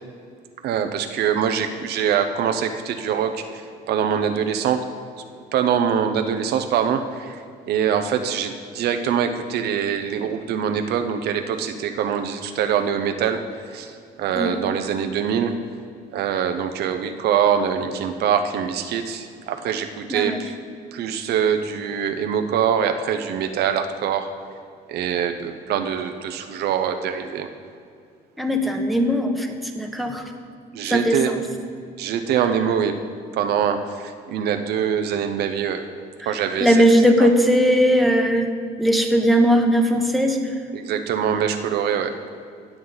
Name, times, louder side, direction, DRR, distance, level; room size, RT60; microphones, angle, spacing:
voice 1, 0.6-4.8 5.5-13.4 13.7-15.5 16.1-20.5 20.9-24.3 24.9-27.5 30.7-31.3 32.0-33.0 33.3-35.8 36.3-36.8 37.2-37.3 40.7-42.1, right 8 dB, 70° right, 7 dB, 0.7 m, -24 dB
voice 2, 28.4-30.2 30.9-31.4 36.6-38.5 38.8-40.4, equal, ahead, 3 dB, 1.1 m, -18 dB
18.5 x 6.3 x 4.0 m, 2.3 s
cardioid pair, 110°, 17 cm